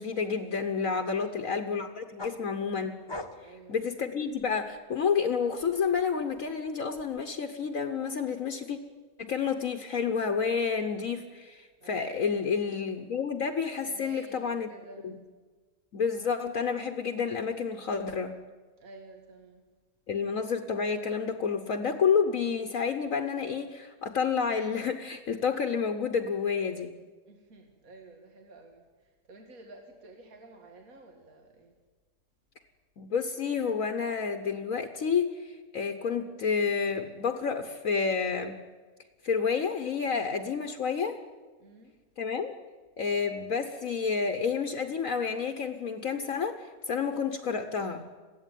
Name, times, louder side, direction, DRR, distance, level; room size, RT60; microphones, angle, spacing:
voice 1, 0.0-2.9 3.7-8.8 9.2-14.7 15.0-15.1 15.9-18.3 20.1-26.9 33.0-38.6 39.2-41.2 42.2-42.5 43.0-48.0, left 6 dB, 60° left, 6 dB, 1.4 m, -30 dB
voice 2, 1.1-1.5 3.4-3.8 11.8-12.3 13.8-15.1 18.8-19.7 27.3-31.7 41.6-41.9, right 3 dB, 60° right, 2 dB, 2.6 m, -51 dB
sound 1, 2.2-4.8 5.2-7.2, left 2 dB, 15° left, 1.1 m, -44 dB
22.0 x 15.5 x 9.2 m, 1.4 s
omnidirectional pair, 1.7 m